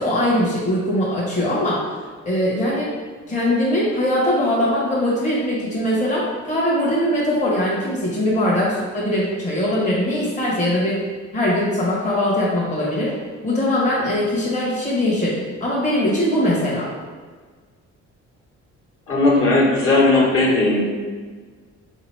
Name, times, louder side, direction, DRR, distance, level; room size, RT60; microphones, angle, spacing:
voice 1, 0.0-1.8 2.2-2.9 3.3-11.0 11.3-13.1 13.4-15.3 15.6-16.9, left 1 dB, 25° left, -6 dB, 1.1 m, -21 dB
voice 2, 19.1-20.8, left 2 dB, 45° left, -5 dB, 1.4 m, -16 dB
3.6 x 2.9 x 4.6 m, 1.5 s
cardioid pair, 90°, 30 cm